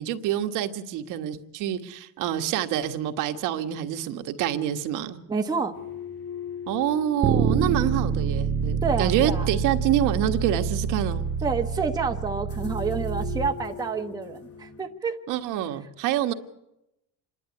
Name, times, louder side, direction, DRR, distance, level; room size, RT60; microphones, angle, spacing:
voice 1, 0.0-5.2 6.7-11.3 15.3-16.3, right 11 dB, 60° right, 6 dB, 1.5 m, -27 dB
voice 2, 5.3-5.8 8.8-9.5 11.4-15.2, right 5 dB, 10° right, 3 dB, 1.1 m, -28 dB
sound 1, 5.7-14.8, left 7 dB, 40° left, 3.2 m, -42 dB
Bass guitar, 7.2-13.5, right 6 dB, 25° right, 1.4 m, -27 dB
27.0 x 11.0 x 9.7 m, 0.89 s
cardioid pair, 150°, 35 cm